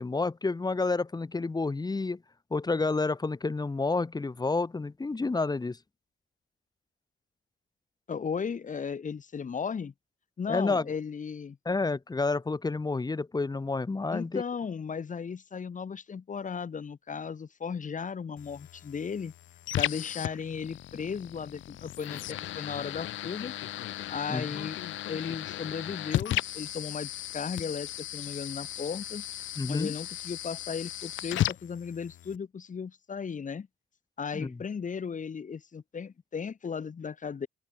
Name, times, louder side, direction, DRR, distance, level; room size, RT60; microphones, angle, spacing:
voice 1, 0.0-2.2 2.5-5.8 10.5-10.9 11.6-14.4 24.3-24.5 29.6-29.9 34.3-34.6, left 3 dB, 20° left, 1.3 m, -29 dB
voice 2, 8.1-9.9 10.4-11.6 14.1-19.3 19.8-23.5 24.1-24.8 25.1-29.2 29.7-33.7 34.2-37.5, left 6 dB, 40° left, 2.4 m, -36 dB
sound 1, 18.4-32.4, left 13 dB, 75° left, 1.0 m, -36 dB
cardioid pair, 90°, 20 cm